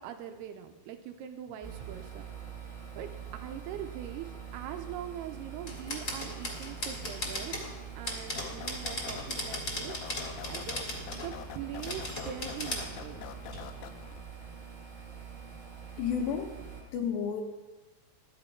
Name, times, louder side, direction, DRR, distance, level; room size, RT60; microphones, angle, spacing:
voice 1, 0.0-2.3 3.0-7.6 8.0-10.0 10.5-13.3, right 10 dB, 85° right, 6 dB, 2.7 m, -42 dB
sound 1, 1.6-16.8, right 7 dB, 15° right, 1.8 m, -45 dB
sound 2, 5.7-7.7 8.0-11.3 11.8-12.9 13.5-13.6, left 1 dB, 30° left, 1.6 m, -37 dB
sound 3, 8.4-14.2, left 9 dB, 90° left, 2.8 m, -45 dB
voice 2, 16.0-16.5 16.9-17.4, left 7 dB, 70° left, 3 dB, 2.5 m, -31 dB
12.5 x 10.5 x 4.6 m, 1.2 s
omnidirectional pair, 4.8 m